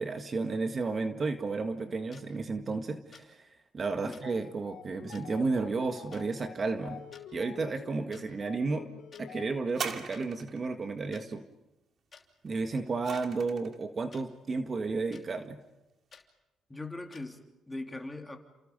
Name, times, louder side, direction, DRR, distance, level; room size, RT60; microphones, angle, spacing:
voice 1, 0.0-3.5 3.7-7.0 7.3-8.9 9.2-11.4 12.4-15.6, right 3 dB, 40° right, 6 dB, 1.7 m, -32 dB
sound 1, 2.1-2.2 3.1-3.3 4.1-4.2 5.1-5.2 6.1-6.3 7.0-7.2 8.1-8.2 9.1-9.2 10.1-10.2 11.1-11.2 12.1-12.2 13.1-13.2 14.1-14.2 15.1-15.2 16.1-16.2 17.1-17.2, left 6 dB, 45° left, 3.0 m, -53 dB
sound 2, 4.1-9.9, left 9 dB, 85° left, 3.5 m, -49 dB
sound 3, 9.7-10.7 12.5-13.8 14.6-14.7, right 6 dB, 55° right, 2.5 m, -40 dB
voice 2, 16.7-18.4, left 2 dB, 10° left, 3 dB, 3.2 m, -40 dB
29.5 x 27.5 x 5.3 m, 0.96 s
cardioid pair, 90°, 0 cm